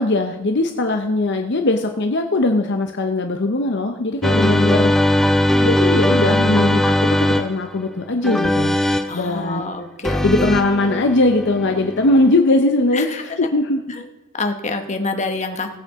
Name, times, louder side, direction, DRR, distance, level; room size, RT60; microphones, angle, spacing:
voice 1, 0.0-4.9 5.6-8.8 9.1-9.7 10.2-13.8, left 2 dB, 50° left, 5 dB, 0.7 m, -20 dB
sound 1, 4.2-7.8 8.2-9.2 10.0-12.4, left 1 dB, ahead, 0.4 m, -19 dB
voice 2, 9.1-10.5 10.8-11.0 12.9-13.2 14.4-15.8, left 3 dB, 30° left, 6 dB, 1.0 m, -26 dB
19.0 x 8.4 x 3.6 m, 1.0 s
head